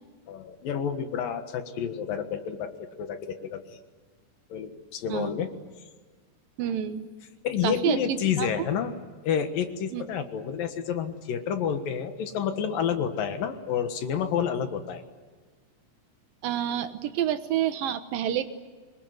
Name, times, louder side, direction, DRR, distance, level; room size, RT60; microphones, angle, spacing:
voice 1, 0.3-3.6 4.5-5.5 7.4-8.9 9.2-15.0, left 8 dB, 75° left, 8 dB, 3.2 m, -29 dB
voice 2, 6.6-7.1 7.6-8.7 9.9-10.0 16.4-18.5, right 10 dB, 75° right, 9 dB, 2.9 m, -28 dB
25.5 x 21.5 x 9.6 m, 1.5 s
omnidirectional pair, 4.1 m